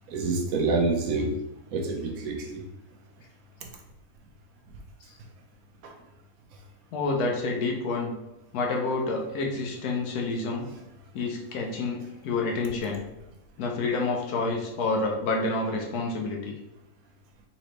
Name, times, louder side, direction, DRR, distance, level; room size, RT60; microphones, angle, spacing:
voice 1, 0.1-1.3 1.7-2.6 3.6-3.7 5.8-5.9, right 3 dB, 70° right, 2 dB, 1.2 m, -27 dB
voice 2, 6.9-8.1 8.5-10.7 11.1-13.0 13.6-16.5, left 3 dB, 90° left, 0 dB, 1.3 m, -28 dB
4.3 x 3.1 x 3.1 m, 0.91 s
omnidirectional pair, 1.6 m